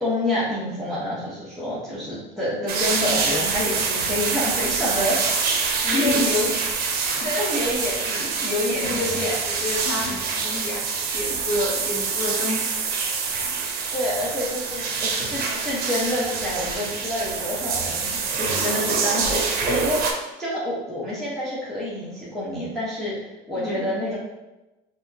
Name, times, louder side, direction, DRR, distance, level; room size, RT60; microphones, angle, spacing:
voice 1, 0.0-6.5 7.2-9.4 13.9-24.2, left 1 dB, ahead, -10 dB, 0.9 m, -28 dB
sound 1, 2.7-20.1, right 5 dB, 65° right, 0.5 m, -26 dB
voice 2, 5.8-6.3 7.2-7.3 8.7-10.8 11.1-12.7 23.6-24.0, left 2 dB, 75° left, -3 dB, 0.7 m, -29 dB
4.7 x 2.0 x 2.7 m, 1.0 s
cardioid pair, 110°, 17 cm